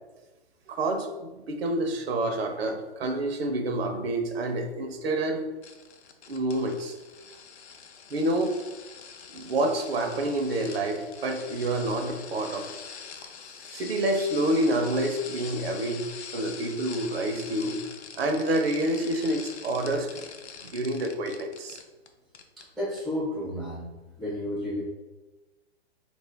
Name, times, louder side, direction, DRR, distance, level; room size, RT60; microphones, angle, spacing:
voice 1, 0.7-5.5 6.3-6.9 8.1-8.6 9.3-12.7 13.7-16.1 16.3-17.8 18.2-20.2 20.7-21.8, right 1 dB, 65° right, 4 dB, 0.7 m, -28 dB
sound 1, 5.6-22.1 22.3-22.6 23.0-23.1, left 6 dB, 80° left, 0.6 m, -44 dB
voice 2, 22.8-23.9 24.2-24.8, left 1 dB, ahead, -8 dB, 0.3 m, -31 dB
3.6 x 2.5 x 3.3 m, 1.1 s
hypercardioid pair, 135°, 33 cm